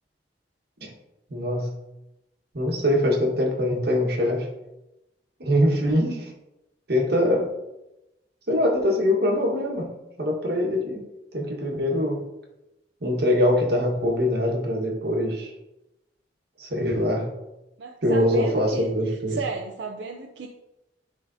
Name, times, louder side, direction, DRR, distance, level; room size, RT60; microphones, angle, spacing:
voice 1, 1.3-1.8 2.5-4.5 5.4-6.3 6.9-7.5 8.5-11.0 11.3-12.2 13.0-15.5 16.6-17.3 18.0-19.4, left 1 dB, 65° right, 0 dB, 1.5 m, -23 dB
voice 2, 17.8-20.5, right 4 dB, 85° right, 0 dB, 0.6 m, -34 dB
11.0 x 3.8 x 2.7 m, 0.94 s
head